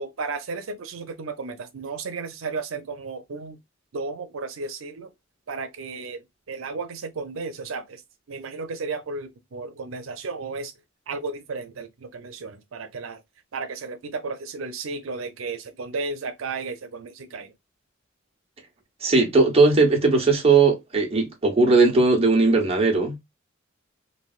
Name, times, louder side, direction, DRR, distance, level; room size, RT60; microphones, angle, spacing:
voice 1, 0.0-3.6 3.9-5.1 5.5-8.0 8.3-10.7 11.1-13.2 13.5-17.5, right 4 dB, 90° right, 0.6 m, -33 dB
voice 2, 19.0-23.2, right 3 dB, 30° right, 1.0 m, -18 dB
3.3 x 2.5 x 2.4 m
head